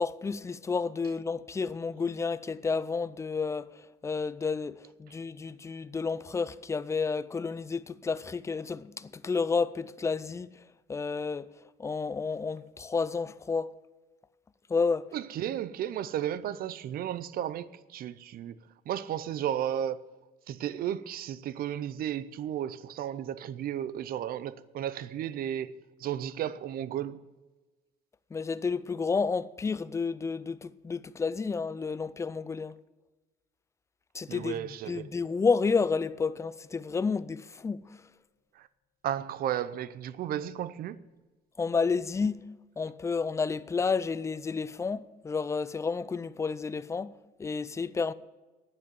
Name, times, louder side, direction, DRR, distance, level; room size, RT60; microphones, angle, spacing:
voice 1, 0.0-10.5 10.9-11.5 11.8-13.7 14.7-15.1 28.3-32.7 34.1-34.6 34.9-37.9 41.6-42.5 42.8-48.1, left 5 dB, 15° left, 0.4 m, -31 dB
voice 2, 15.1-18.6 18.9-20.0 20.5-25.7 26.0-27.2 34.3-35.1 38.5-38.7 39.0-41.0, right 10 dB, 60° right, 0.6 m, -34 dB
sound 1, 35.8-38.1, left 10 dB, 45° left, 1.6 m, -58 dB
9.5 x 7.6 x 9.3 m
cardioid pair, 110°, 17 cm